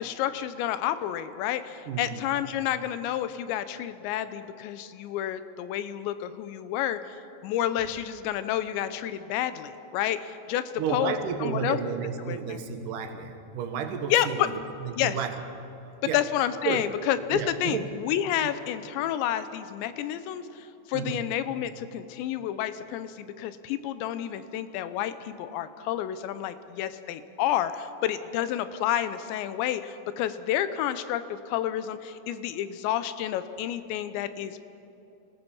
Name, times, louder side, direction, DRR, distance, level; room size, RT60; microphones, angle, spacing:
voice 1, 0.0-7.2 7.4-10.6 10.9-11.2 11.4-11.8 12.2-12.6 14.1-14.5 15.0-15.2 16.1-34.6, left 11 dB, 80° left, 12 dB, 3.0 m, -30 dB
voice 2, 1.9-2.2 10.8-14.5 14.8-15.4 16.0-16.2 16.6-16.9 17.3-17.9 20.9-21.2, right 7 dB, 65° right, 6 dB, 2.3 m, -32 dB
26.5 x 19.5 x 5.6 m, 2.9 s
omnidirectional pair, 5.3 m